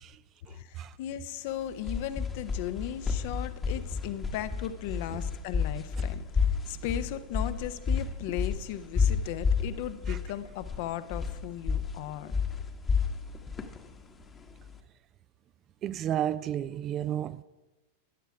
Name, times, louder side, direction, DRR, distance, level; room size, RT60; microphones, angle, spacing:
voice 1, 0.5-12.4, left 11 dB, 50° left, 0.8 m, -37 dB
sound 1, 1.5-14.8, left 5 dB, 20° left, 1.1 m, -31 dB
voice 2, 15.8-17.4, right 11 dB, 30° right, 0.4 m, -31 dB
14.5 x 10.0 x 4.8 m
figure-of-eight pair, 90°, 0 cm